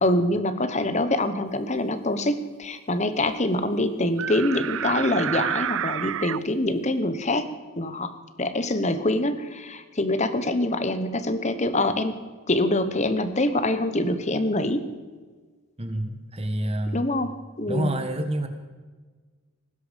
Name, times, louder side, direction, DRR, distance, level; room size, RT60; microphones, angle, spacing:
voice 1, 0.0-7.5 7.8-8.1 8.4-12.2 12.5-14.9 16.9-17.9, left 1 dB, 30° left, 11 dB, 1.1 m, -25 dB
sound 1, 4.2-6.4, right 10 dB, 65° right, 0.4 m, -29 dB
voice 2, 15.8-17.1 17.7-18.5, right 1 dB, 25° right, 7 dB, 1.5 m, -28 dB
19.0 x 10.5 x 5.3 m, 1.4 s
head